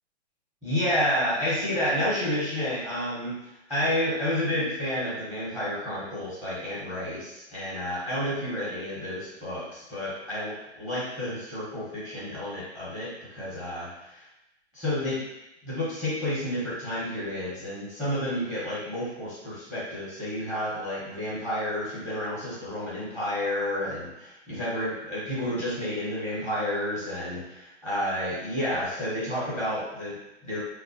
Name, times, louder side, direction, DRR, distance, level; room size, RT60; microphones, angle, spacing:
voice 1, 0.6-3.3 3.7-14.2 14.7-15.2 15.6-30.6, left 1 dB, 10° right, -9 dB, 0.9 m, -30 dB
4.5 x 2.2 x 2.6 m, 0.90 s
hypercardioid pair, 135°, 35 cm